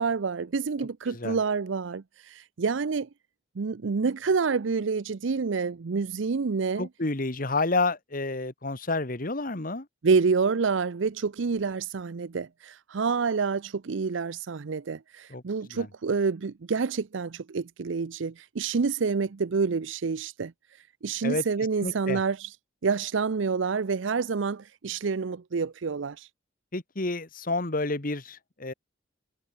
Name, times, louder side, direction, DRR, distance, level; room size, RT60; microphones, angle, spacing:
voice 1, 0.0-3.1 3.6-6.9 10.0-20.5 21.0-22.5 22.8-26.3, right 5 dB, 80° right, 0.6 m, -28 dB
voice 2, 1.1-1.4 6.8-9.9 15.3-15.4 15.7-15.9 21.2-21.4 21.8-22.2 26.7-28.7, left 3 dB, 45° left, 1.7 m, -29 dB
head